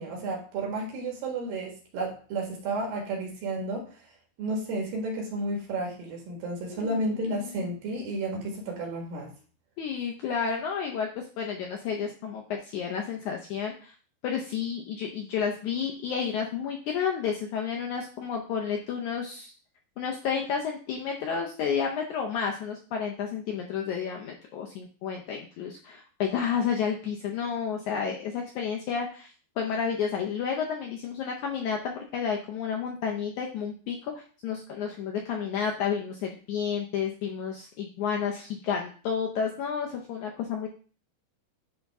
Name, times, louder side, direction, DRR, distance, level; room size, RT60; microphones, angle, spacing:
voice 1, 0.0-3.9 4.4-9.3, right 2 dB, 75° right, -1 dB, 3.4 m, -32 dB
voice 2, 6.7-7.7 9.8-13.9 14.2-19.5 20.0-40.7, left 7 dB, 80° left, 1 dB, 1.7 m, -31 dB
10.5 x 3.6 x 3.5 m, 0.40 s
omnidirectional pair, 4.2 m